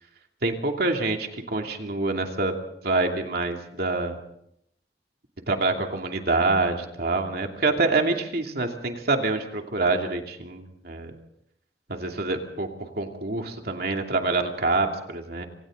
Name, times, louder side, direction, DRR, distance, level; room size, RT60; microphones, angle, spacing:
voice 1, 0.4-2.5 2.8-4.2 5.5-11.1 11.9-15.4, right 3 dB, 60° right, 3 dB, 2.7 m, -26 dB
27.5 x 26.5 x 3.9 m, 0.75 s
head